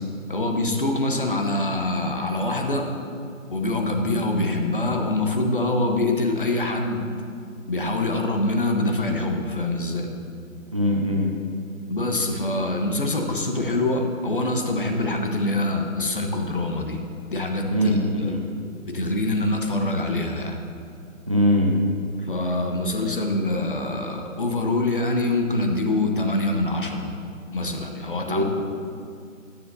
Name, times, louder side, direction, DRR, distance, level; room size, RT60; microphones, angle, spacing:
voice 1, 0.3-2.9 3.5-7.1 7.7-10.1 11.9-17.0 17.3-18.4 18.8-20.6 22.2-27.1 27.5-28.4, left 2 dB, 40° left, 3 dB, 1.0 m, -25 dB
voice 2, 10.7-11.3 17.7-18.4 21.3-21.8 28.3-28.4, equal, 25° right, -1 dB, 0.7 m, -21 dB
13.0 x 9.8 x 2.7 m, 2.3 s
figure-of-eight pair, 160°, 40 cm